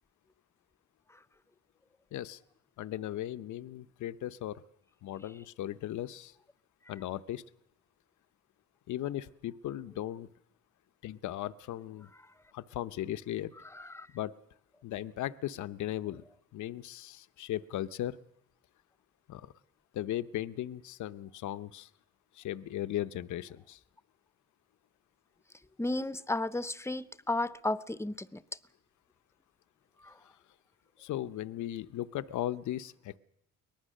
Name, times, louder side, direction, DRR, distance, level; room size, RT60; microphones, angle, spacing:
voice 1, 2.8-4.6 5.0-6.3 6.9-7.4 8.9-10.3 11.0-12.1 12.5-13.5 14.1-14.4 14.8-16.2 16.5-18.2 19.3-19.5 19.9-21.9 22.3-23.8 30.2-30.3 31.0-33.2, left 13 dB, 75° left, 0.8 m, -37 dB
voice 2, 13.8-14.1 25.8-28.4, left 2 dB, 10° left, 0.7 m, -33 dB
23.5 x 19.0 x 6.5 m
cardioid pair, 90°, 30 cm